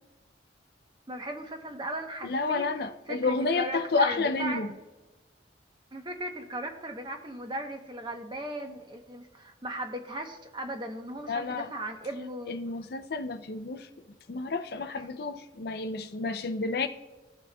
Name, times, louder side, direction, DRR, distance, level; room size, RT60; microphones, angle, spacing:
voice 1, 1.1-2.7 3.1-4.6 5.9-12.5 15.0-15.2, right 1 dB, 25° right, 0.9 m, -37 dB
voice 2, 2.2-4.7 11.3-11.7 12.5-13.9 14.3-16.9, left 3 dB, 55° left, 0.5 m, -30 dB
17.0 x 6.1 x 2.3 m
head